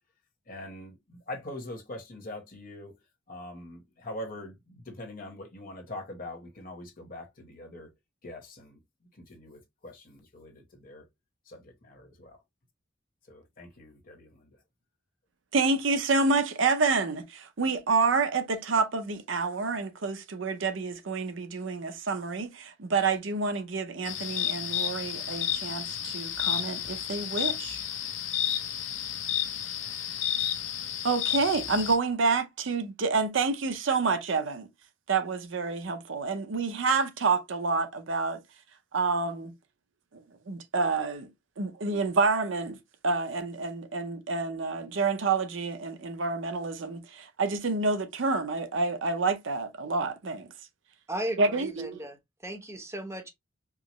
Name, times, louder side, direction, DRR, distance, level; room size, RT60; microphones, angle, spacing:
voice 1, 0.5-3.0 3.3-7.9 8.2-8.8 9.1-11.0 11.5-12.4 13.3-14.6, left 1 dB, 45° left, 1.1 m, -43 dB
voice 2, 15.5-27.8 31.0-34.7 35.1-38.4 38.9-39.5 40.1-40.2 40.5-41.3 41.6-42.8 43.0-50.5 51.4-52.0, right 4 dB, 75° right, 0.7 m, -28 dB
sound 1, 24.1-32.0, left 10 dB, 80° left, 0.7 m, -31 dB
voice 3, 51.1-53.3, right 1 dB, 15° right, 0.8 m, -36 dB
4.7 x 2.0 x 2.9 m
head